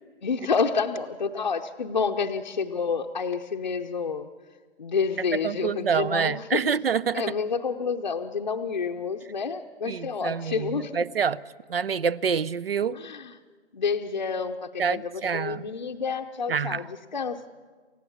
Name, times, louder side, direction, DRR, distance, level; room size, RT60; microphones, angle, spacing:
voice 1, 0.2-4.3 4.8-6.6 7.1-11.0 12.9-13.3 13.7-17.5, left 5 dB, 40° left, 2 dB, 0.7 m, -29 dB
voice 2, 5.4-7.2 9.9-11.4 11.7-13.0 14.8-15.7 16.5-16.8, right 6 dB, 55° right, 20 dB, 0.7 m, -27 dB
29.0 x 15.5 x 7.2 m, 1.5 s
hypercardioid pair, 180°, 34 cm